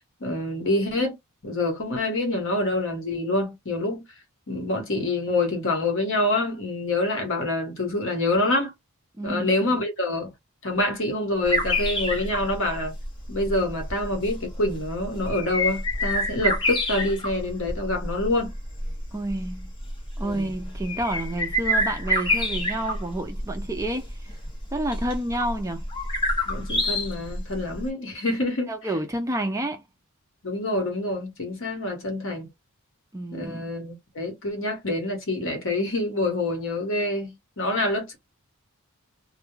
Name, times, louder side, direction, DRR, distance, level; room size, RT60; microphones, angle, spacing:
voice 1, 0.2-1.2 1.4-4.1 4.5-8.7 9.2-10.3 10.6-12.9 13.3-18.5 20.2-20.5 26.5-28.7 30.4-32.5 33.3-38.2, left 2 dB, 60° left, 1.0 m, -26 dB
voice 2, 9.2-9.5 19.1-19.7 20.2-24.3 24.7-25.8 28.7-29.8 33.1-33.6, right 1 dB, 15° right, 0.4 m, -29 dB
sound 1, 11.4-27.8, left 1 dB, 20° left, 0.8 m, -28 dB
2.2 x 2.2 x 3.0 m
head